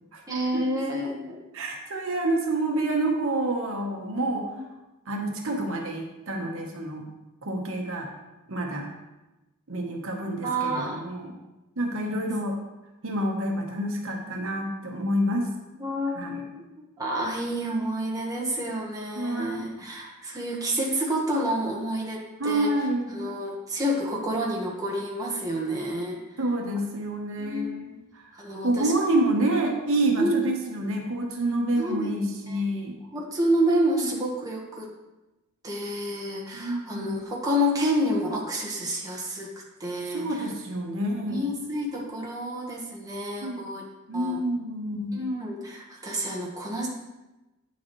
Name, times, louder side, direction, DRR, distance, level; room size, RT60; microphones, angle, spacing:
voice 1, 0.3-1.4 4.4-4.6 10.4-11.1 15.8-16.6 17.0-26.4 27.4-27.8 28.3-28.9 30.1-30.5 31.8-32.1 32.5-32.6 33.1-34.9 35.6-39.5 39.8-40.5 41.2-43.8 44.1-44.4 45.1-46.9, equal, 15° right, -3 dB, 1.3 m, -29 dB
voice 2, 1.5-4.5 5.1-7.1 7.4-8.1 8.5-8.9 9.7-11.3 11.8-12.6 13.0-15.5 16.2-16.4 19.1-19.6 22.4-23.4 26.4-28.3 28.6-33.0 34.0-34.3 36.5-37.1 40.1-41.5 43.4-43.7 44.1-45.2, right 1 dB, 65° right, 1 dB, 1.1 m, -28 dB
8.9 x 7.1 x 3.1 m, 1.0 s
head